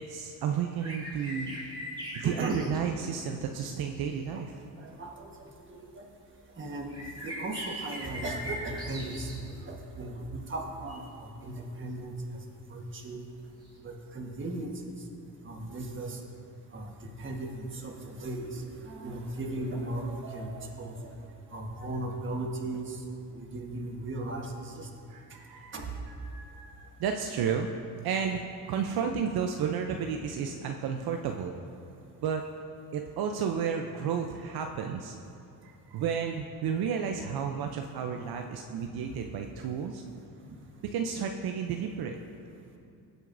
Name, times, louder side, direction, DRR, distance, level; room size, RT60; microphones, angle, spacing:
voice 1, 0.0-1.6 2.1-4.5 25.1-25.7 26.2-27.7 28.0-28.4 28.7-31.6 32.2-32.4 32.9-35.1 35.6-40.0 40.8-42.2, right 7 dB, 70° right, 4 dB, 0.6 m, -32 dB
sound 1, 0.8-3.1 4.0-4.1 4.9-5.0 6.9-9.4 10.9-11.0 13.6-13.7, equal, 10° right, 2.6 m, -40 dB
voice 2, 2.2-2.6 4.8-5.3 5.7-5.9 6.6-6.9 7.2-12.1 12.7-13.2 13.8-14.9 15.4-16.2 16.7-16.9 17.2-21.1 21.5-23.0 23.3-24.9 25.7-25.9, right 2 dB, 30° right, 1 dB, 1.4 m, -37 dB
18.0 x 8.0 x 2.6 m, 2.6 s
cardioid pair, 120°, 39 cm